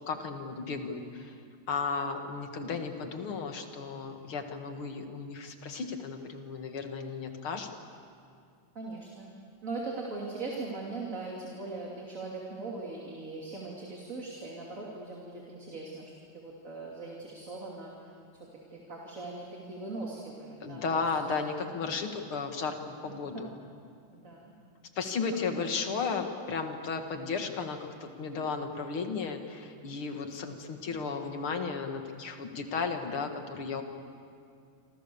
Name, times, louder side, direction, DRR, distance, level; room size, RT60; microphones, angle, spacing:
voice 1, 0.1-1.4 1.7-7.7 20.6-22.8 23.0-23.5 25.0-33.8, left 5 dB, 90° left, 5 dB, 2.8 m, -34 dB
voice 2, 8.7-9.3 9.6-21.0 24.1-24.5 25.5-25.7, right 3 dB, 40° right, -2 dB, 3.2 m, -40 dB
27.0 x 27.0 x 7.0 m, 2.3 s
omnidirectional pair, 2.3 m